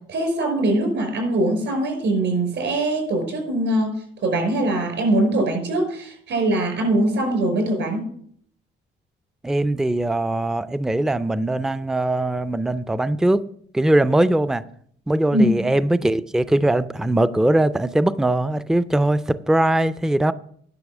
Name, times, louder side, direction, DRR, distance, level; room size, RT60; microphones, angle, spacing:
voice 1, 0.1-3.9 4.2-8.1 15.3-15.5, right 1 dB, 70° right, 5.5 m, -22 dB
voice 2, 9.4-13.4 13.7-14.6 15.1-20.3, right 1 dB, 5° right, 0.4 m, -21 dB
10.5 x 6.1 x 6.1 m
cardioid pair, 90°, 20 cm